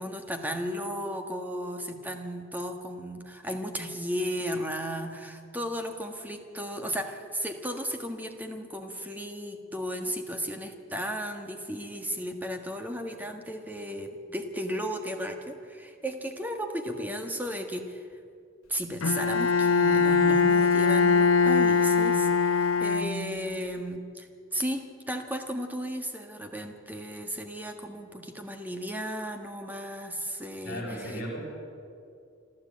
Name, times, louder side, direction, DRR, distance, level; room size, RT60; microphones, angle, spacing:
voice 1, 0.0-18.1 18.7-24.3 24.5-31.2, equal, 10° right, 5 dB, 1.6 m, -35 dB
Bowed string instrument, 19.0-23.5, left 5 dB, 90° left, 0.8 m, -22 dB
voice 2, 30.6-31.4, equal, 45° left, -4 dB, 5.9 m, -35 dB
27.0 x 12.5 x 8.6 m, 2.4 s
head